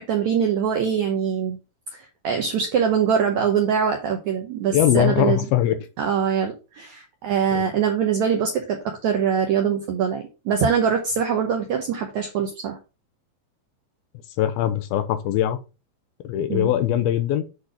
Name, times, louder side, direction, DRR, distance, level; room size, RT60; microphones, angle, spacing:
voice 1, 0.0-1.6 2.2-5.4 6.0-12.8 16.5-16.7, right 7 dB, 80° right, 1.7 m, -23 dB
voice 2, 4.7-5.8 7.5-7.6 14.4-15.6 16.2-17.4, left 12 dB, 80° left, 2.5 m, -21 dB
8.2 x 4.0 x 4.9 m
omnidirectional pair, 4.6 m